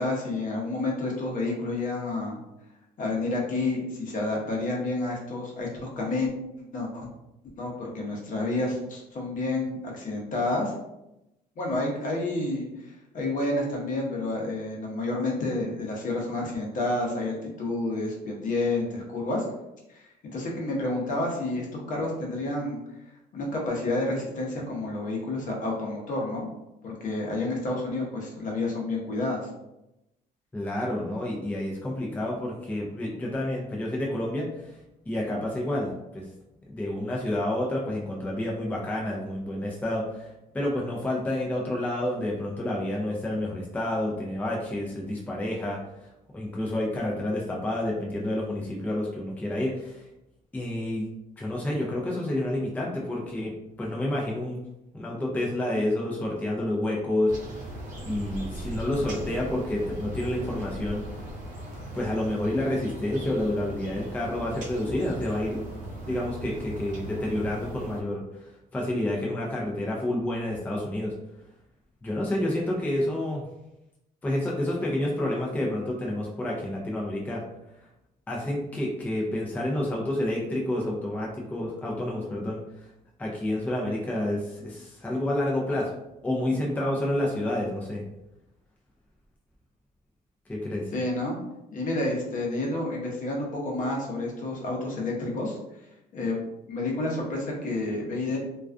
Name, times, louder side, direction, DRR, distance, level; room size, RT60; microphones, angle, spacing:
voice 1, 0.0-2.4 3.0-6.3 6.6-7.1 7.6-10.7 11.6-19.5 19.9-23.0 23.3-26.5 26.8-29.5 90.9-91.4 91.7-95.6 96.1-98.4, left 2 dB, 50° left, -1 dB, 0.8 m, -30 dB
voice 2, 30.5-34.8 35.1-36.2 36.7-50.1 50.5-51.1 51.4-54.6 54.9-57.3 58.1-61.0 61.9-65.6 66.0-71.1 72.0-73.4 74.2-77.4 78.3-82.9 83.2-85.9 86.2-88.0 90.5-90.9, left 1 dB, 10° left, -3 dB, 0.4 m, -29 dB
sound 1, 57.3-68.0, right 1 dB, 50° right, 0.7 m, -38 dB
2.3 x 2.2 x 2.4 m, 0.90 s
cardioid pair, 110°, 17 cm